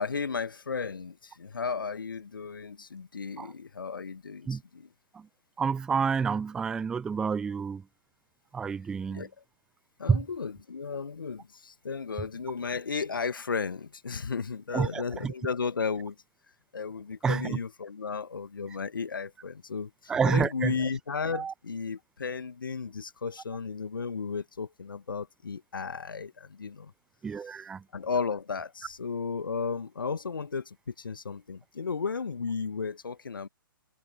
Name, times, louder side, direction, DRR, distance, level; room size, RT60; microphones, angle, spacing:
voice 1, 0.0-4.9 9.1-9.3 10.0-16.2 16.7-26.9 27.4-27.6 27.9-33.5, left 5 dB, 65° left, 1.8 m, -34 dB
voice 2, 5.6-7.8 8.5-9.2 10.1-10.2 14.7-15.3 17.2-17.6 20.1-20.7 21.3-21.5 27.2-27.8, right 6 dB, 5° right, 0.3 m, -28 dB
figure-of-eight pair, 125°, 12 cm